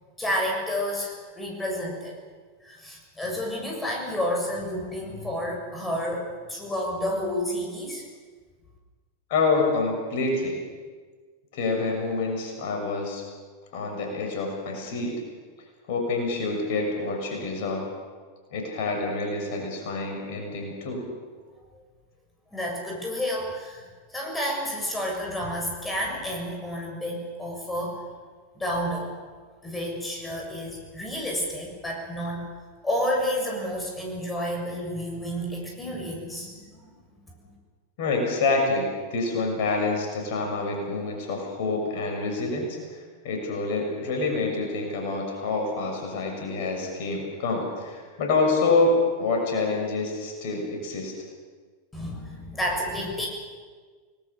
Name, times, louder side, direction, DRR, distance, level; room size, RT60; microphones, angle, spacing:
voice 1, 0.2-2.2 2.6-8.0 21.7-21.8 22.5-28.0 28.5-29.1 29.6-32.4 32.8-36.9 37.4-37.5 51.9-53.3, equal, 10° left, -1 dB, 7.0 m, -30 dB
voice 2, 9.3-10.6 11.5-13.2 13.7-15.2 15.9-17.9 18.5-21.0 38.0-51.1, left 3 dB, 50° left, 2 dB, 6.8 m, -27 dB
29.5 x 20.0 x 6.9 m, 1.5 s
figure-of-eight pair, 90°, 0 cm